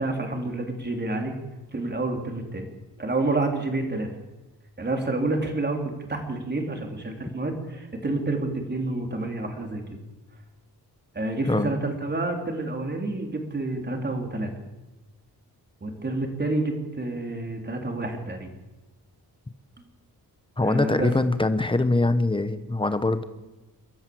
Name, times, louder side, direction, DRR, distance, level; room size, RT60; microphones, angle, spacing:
voice 1, 0.0-1.3 1.7-2.7 3.0-4.1 4.8-9.8 11.2-14.5 15.8-18.5 20.6-21.1, right 2 dB, 25° right, 3 dB, 3.5 m, -29 dB
voice 2, 20.6-23.2, left 2 dB, 15° left, 11 dB, 1.1 m, -23 dB
28.0 x 13.5 x 7.8 m, 1.1 s
wide cardioid pair, 160°, 40 cm